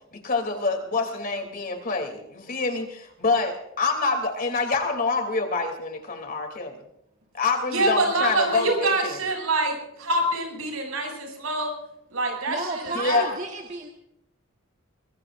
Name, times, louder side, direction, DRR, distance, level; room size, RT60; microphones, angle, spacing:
voice 1, 0.0-6.8 7.3-9.2 12.9-13.3, left 3 dB, 45° left, 4 dB, 3.0 m, -26 dB
voice 2, 7.7-11.7 12.1-13.2, right 2 dB, 80° right, 2 dB, 7.2 m, -25 dB
voice 3, 12.5-13.9, right 2 dB, 35° right, 1 dB, 1.7 m, -33 dB
24.0 x 21.5 x 2.6 m, 0.82 s
head